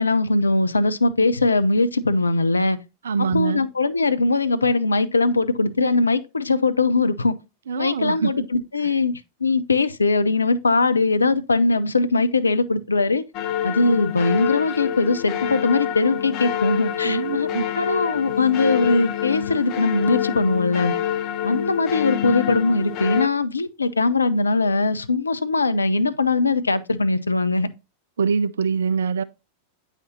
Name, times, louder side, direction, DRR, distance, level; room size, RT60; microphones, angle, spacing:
voice 1, 0.0-2.8 3.2-7.3 7.8-9.1 9.4-13.2 13.6-17.5 17.8-20.9 21.4-27.7, left 3 dB, 80° left, 0.5 m, -21 dB
voice 2, 3.0-3.6 7.7-8.3 8.8-8.9 17.0-17.7 28.2-29.2, right 5 dB, 65° right, 0.3 m, -24 dB
sound 1, 13.3-23.3, left 10 dB, 40° left, 0.7 m, -26 dB
9.0 x 5.8 x 2.7 m
figure-of-eight pair, 90°, 0 cm